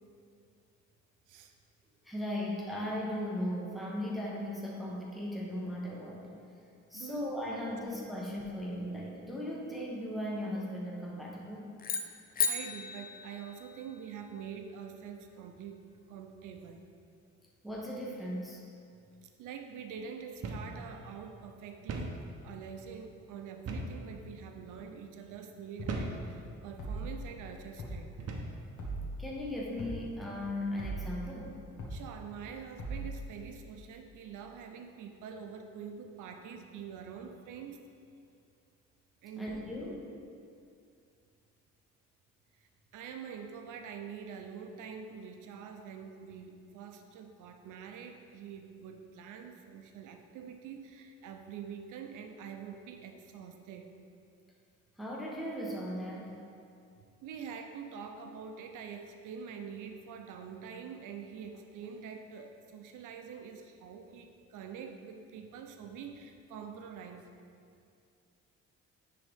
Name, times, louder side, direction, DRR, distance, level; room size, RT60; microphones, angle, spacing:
voice 1, 2.0-6.3 6.9-11.7 17.6-18.6 29.2-31.6 39.4-40.0 55.0-56.4, left 1 dB, ahead, -4 dB, 1.0 m, -37 dB
voice 2, 6.9-7.5 7.8-8.0 12.5-16.8 19.2-28.1 31.9-37.8 39.2-39.7 42.6-53.9 57.2-67.3, right 7 dB, 85° right, 5 dB, 0.6 m, -45 dB
sound 1, 11.8-14.1, left 5 dB, 30° left, 0.4 m, -35 dB
sound 2, 20.4-20.7 21.0-21.1 21.9-22.2 23.7-24.0 24.7-24.9 25.9-26.2 27.0-27.2 28.2-28.6, right 3 dB, 55° right, 0.8 m, -37 dB
sound 3, 25.8-26.0 26.8-27.2 27.8-28.0 28.8-29.2 29.8-30.0 30.8-31.2 31.8-32.0 32.8-33.2, right 2 dB, 70° left, 1.4 m, -38 dB
9.6 x 3.8 x 3.5 m, 2.4 s
cardioid pair, 90°, 30 cm